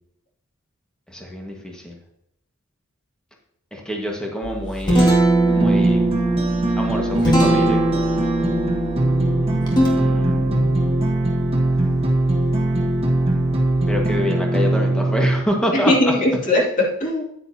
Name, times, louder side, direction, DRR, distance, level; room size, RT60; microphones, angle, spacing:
voice 1, 1.1-2.0 3.7-5.3 5.5-6.0 6.8-7.8 9.6-10.9 13.9-16.1, equal, 5° left, 0 dB, 1.6 m, -27 dB
Guitar, 4.4-14.2, right 1 dB, 20° left, 1.9 m, -22 dB
sound 1, 5.5-15.4, right 1 dB, 30° right, 1.5 m, -21 dB
voice 2, 15.7-17.2, left 1 dB, 40° left, -2 dB, 2.6 m, -21 dB
9.6 x 9.2 x 2.8 m, 0.76 s
head